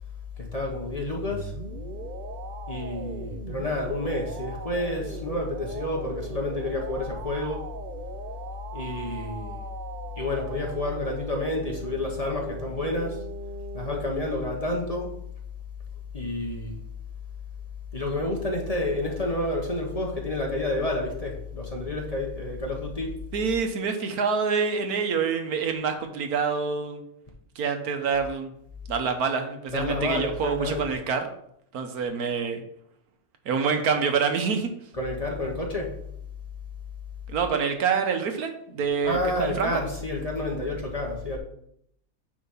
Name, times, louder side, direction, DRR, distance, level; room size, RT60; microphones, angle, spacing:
voice 1, 0.4-1.5 2.7-7.7 8.7-9.6 10.2-13.2 13.7-15.1 16.1-16.8 17.9-23.2 29.7-30.9 34.9-36.0 39.0-41.4, left 2 dB, 25° left, 0 dB, 1.1 m, -29 dB
sound 1, 1.3-14.1, right 5 dB, 60° right, 0.5 m, -40 dB
voice 2, 23.3-27.0 27.6-28.5 28.9-31.2 31.7-32.6 33.4-34.7 37.3-39.8, right 5 dB, 80° right, 6 dB, 1.4 m, -26 dB
8.8 x 3.4 x 5.6 m, 0.72 s
omnidirectional pair, 1.6 m